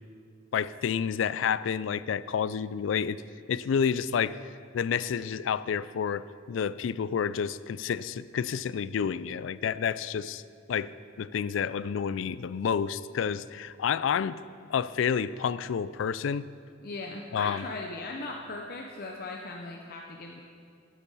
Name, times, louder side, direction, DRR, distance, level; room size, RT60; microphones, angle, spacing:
voice 1, 0.5-3.2 3.5-10.4 10.7-10.9 11.2-14.4 14.7-16.5 17.3-17.6, left 7 dB, 75° left, 17 dB, 0.3 m, -29 dB
voice 2, 16.8-20.4, left 2 dB, 50° left, 1 dB, 0.7 m, -38 dB
11.5 x 8.5 x 5.6 m, 2.3 s
head